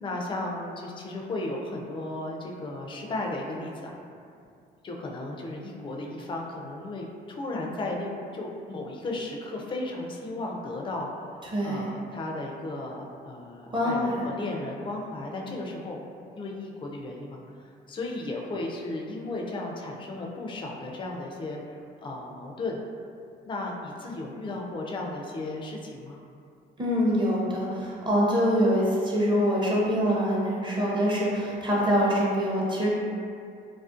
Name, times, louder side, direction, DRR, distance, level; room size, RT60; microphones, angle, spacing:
voice 1, 0.0-3.9 4.8-11.3 11.6-16.0 16.3-22.8 23.5-26.2, left 2 dB, 25° left, -1 dB, 0.3 m, -35 dB
voice 2, 11.5-11.9 13.7-14.2 26.8-32.9, equal, 25° right, -5 dB, 0.6 m, -24 dB
2.4 x 2.1 x 2.4 m, 2.4 s
cardioid pair, 90°, 20 cm